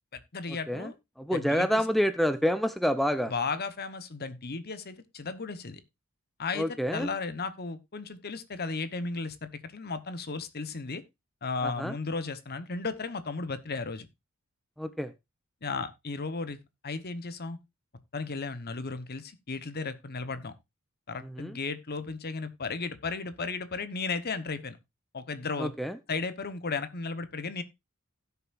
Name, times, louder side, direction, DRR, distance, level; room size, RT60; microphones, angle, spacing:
voice 1, 0.1-0.9 1.3-1.8 3.3-5.8 6.4-11.0 11.4-14.1 15.6-16.6 16.8-17.6 18.1-20.5 21.1-24.8 25.1-25.7 26.1-27.6, left 4 dB, 45° left, 1.1 m, -35 dB
voice 2, 1.2-3.3 6.5-7.1 11.6-11.9 14.8-15.1 21.2-21.6 25.6-26.0, equal, ahead, 0.6 m, -28 dB
17.0 x 6.9 x 2.5 m
head